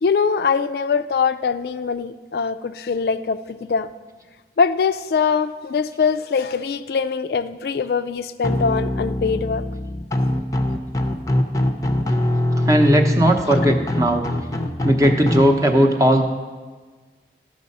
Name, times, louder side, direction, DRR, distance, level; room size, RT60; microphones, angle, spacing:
voice 1, 0.0-3.9 4.6-9.6, left 5 dB, 60° left, 11 dB, 0.3 m, -22 dB
sound 1, 8.4-15.4, left 1 dB, 20° left, 0.6 m, -22 dB
voice 2, 12.7-14.3 14.8-16.2, equal, 20° right, 3 dB, 0.8 m, -17 dB
12.5 x 6.4 x 5.4 m, 1.4 s
head